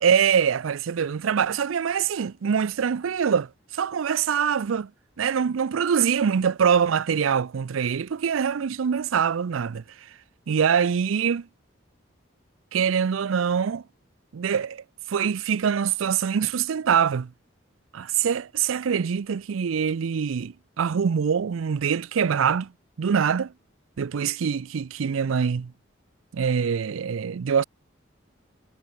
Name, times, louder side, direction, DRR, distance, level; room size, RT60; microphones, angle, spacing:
voice 1, 0.0-4.9 5.2-9.8 10.5-11.5 12.7-13.8 14.3-17.3 17.9-22.7 23.0-23.5 24.0-25.7 26.3-27.6, right 7 dB, 85° right, 0.4 m, -24 dB
head